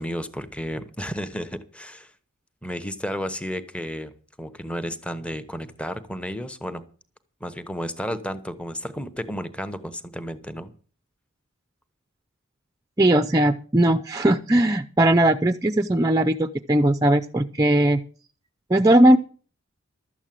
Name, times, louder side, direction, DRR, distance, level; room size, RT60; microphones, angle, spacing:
voice 1, 0.0-2.1 2.6-6.8 7.4-10.7, equal, 5° left, 11 dB, 1.0 m, -32 dB
voice 2, 13.0-18.0 18.7-19.2, right 1 dB, 15° right, 10 dB, 0.5 m, -19 dB
12.5 x 8.1 x 7.5 m, 0.42 s
head